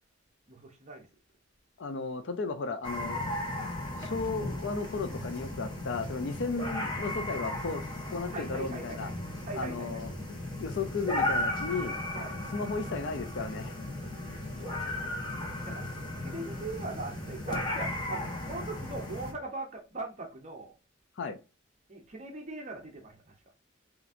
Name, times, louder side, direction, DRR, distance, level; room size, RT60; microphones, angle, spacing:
voice 1, 0.5-1.1 8.3-10.3 12.1-12.4 13.9-14.9 15.2-20.8 21.9-23.4, right 2 dB, 35° right, 0.7 m, -41 dB
voice 2, 1.8-3.2 4.0-7.8 8.1-9.1 9.6-10.1 10.6-12.0 12.5-13.8 21.2-21.4, left 4 dB, 60° left, 0.5 m, -34 dB
sound 1, 2.8-19.3, left 1 dB, 20° left, 1.1 m, -35 dB
5.7 x 2.6 x 2.5 m
head